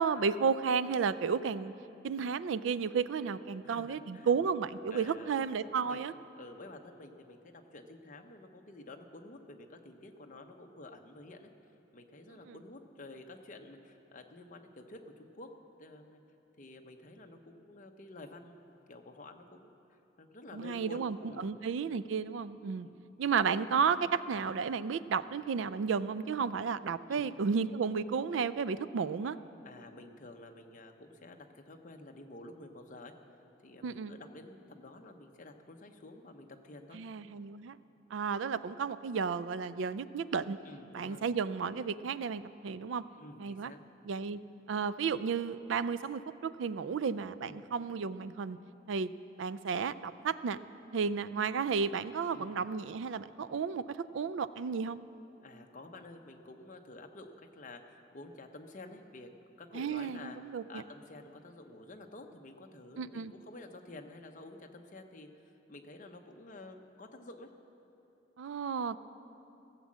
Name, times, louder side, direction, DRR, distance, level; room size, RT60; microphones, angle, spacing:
voice 1, 0.0-1.7 2.0-6.1 12.5-12.6 20.5-21.2 21.4-22.9 23.2-29.4 33.8-34.1 36.9-37.8 38.1-40.6 40.9-43.0 43.4-43.7 44.0-44.4 44.7-48.6 48.9-49.1 49.4-50.6 50.9-55.0 59.7-60.8 63.0-63.3 68.4-69.0, right 6 dB, 75° right, 15 dB, 0.4 m, -33 dB
voice 2, 3.6-4.4 4.9-5.3 5.6-11.5 11.9-15.5 15.8-16.2 16.6-21.6 22.8-23.0 27.1-27.3 29.6-33.1 33.6-37.0 40.6-41.3 43.2-43.8 47.4-47.7 52.3-52.6 55.4-59.3 59.6-60.4 60.7-65.3 65.7-67.5, left 2 dB, 40° left, 4 dB, 0.9 m, -50 dB
17.0 x 7.5 x 7.4 m, 2.9 s
head